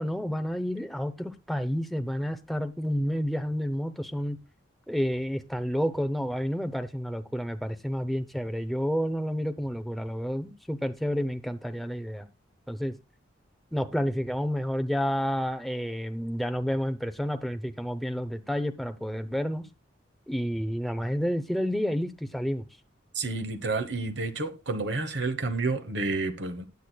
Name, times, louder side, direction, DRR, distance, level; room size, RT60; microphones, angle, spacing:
voice 1, 0.0-4.4 4.9-12.3 12.7-12.9 13.7-19.7 20.3-22.6, equal, ahead, 0.6 m, -30 dB
voice 2, 23.1-26.7, right 3 dB, 65° right, 1.1 m, -30 dB
19.0 x 6.4 x 2.3 m
head